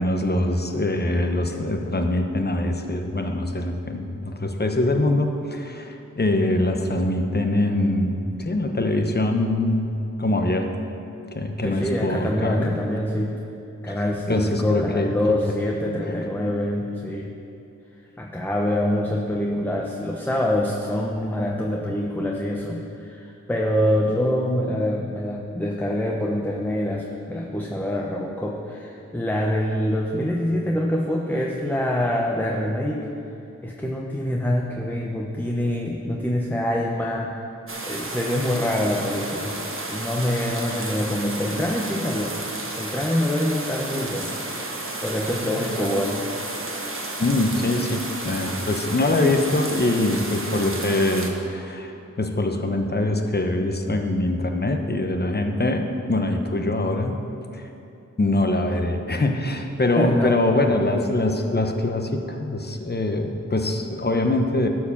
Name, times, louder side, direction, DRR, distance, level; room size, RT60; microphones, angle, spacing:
voice 1, 0.0-10.7 11.3-12.7 13.9-15.4 16.1-16.3 47.2-57.2 57.5-57.7 58.2-64.7, left 2 dB, 35° left, 4 dB, 0.9 m, -23 dB
voice 2, 11.6-13.4 13.8-17.3 18.2-33.1 33.6-37.3 37.9-39.6 39.9-42.4 42.8-44.4 45.0-46.2 60.0-60.4, left 1 dB, 5° left, -1 dB, 0.8 m, -25 dB
sound 1, 37.7-51.3, right 2 dB, 45° right, 1.3 m, -32 dB
12.5 x 4.7 x 7.1 m, 2.8 s
wide cardioid pair, 75°, 30 cm